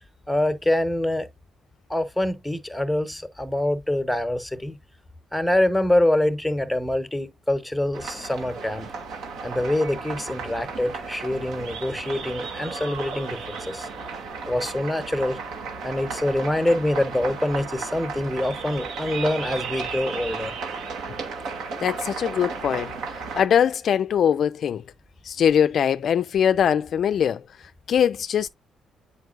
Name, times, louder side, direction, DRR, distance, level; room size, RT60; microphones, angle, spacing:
voice 1, 0.3-1.3 1.9-4.8 5.3-8.9 9.4-13.9 14.5-15.4 15.8-20.5, left 1 dB, 5° left, 1.0 m, -25 dB
sound 1, 7.9-23.5, right 4 dB, 85° right, 2.0 m, -34 dB
voice 2, 21.8-24.8 25.2-27.4 27.9-28.5, left 8 dB, 60° left, 0.3 m, -22 dB
8.0 x 5.1 x 2.5 m
cardioid pair, 90°, 0 cm